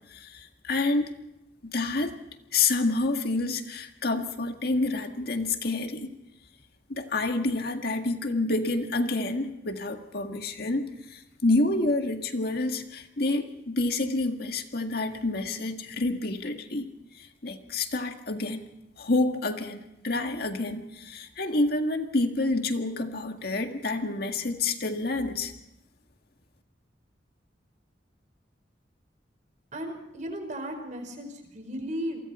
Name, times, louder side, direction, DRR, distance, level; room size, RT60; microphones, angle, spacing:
voice 1, 0.1-1.1 1.6-2.1 2.5-6.1 6.9-16.9 17.1-18.6 19.0-25.5, left 2 dB, 60° left, 5 dB, 1.8 m, -28 dB
voice 2, 29.7-32.2, equal, 45° right, 5 dB, 4.8 m, -35 dB
28.5 x 23.5 x 4.3 m, 0.85 s
head